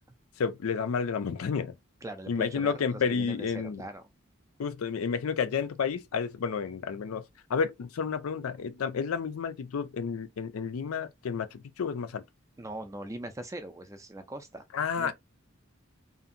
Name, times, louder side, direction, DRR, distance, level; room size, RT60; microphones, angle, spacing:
voice 1, 0.4-1.7 2.3-3.8 4.6-7.2 7.5-12.2 14.7-15.1, left 6 dB, 80° left, 0.4 m, -31 dB
voice 2, 2.0-4.1 12.6-14.6 15.0-15.1, right 1 dB, 15° right, 0.3 m, -41 dB
2.7 x 2.5 x 2.5 m
head